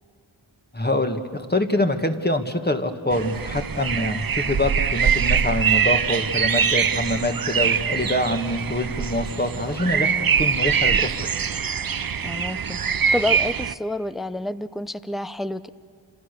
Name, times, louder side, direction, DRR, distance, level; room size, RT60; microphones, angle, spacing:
voice 1, 0.7-10.1 10.4-11.3, left 1 dB, 20° left, 5 dB, 1.8 m, -25 dB
sound 1, 3.1-13.7, right 7 dB, 45° right, 0.6 m, -23 dB
voice 2, 9.8-10.3 12.2-15.7, left 1 dB, ahead, 14 dB, 0.6 m, -29 dB
30.0 x 26.5 x 6.8 m, 2.2 s
wide cardioid pair, 45°, 48 cm